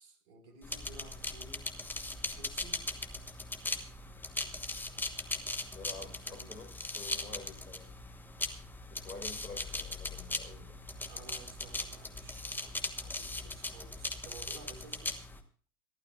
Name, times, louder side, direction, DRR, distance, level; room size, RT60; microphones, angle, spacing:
voice 1, 0.0-1.7 2.3-2.8 5.9-6.7 11.0-15.1, right 3 dB, 50° right, 6 dB, 4.8 m, -54 dB
sound 1, 0.6-15.4, left 2 dB, 5° left, 1.1 m, -39 dB
voice 2, 5.7-7.9 8.9-10.8, left 3 dB, 80° left, 6 dB, 4.2 m, -48 dB
26.5 x 12.0 x 2.4 m, 0.43 s
figure-of-eight pair, 95°, 46 cm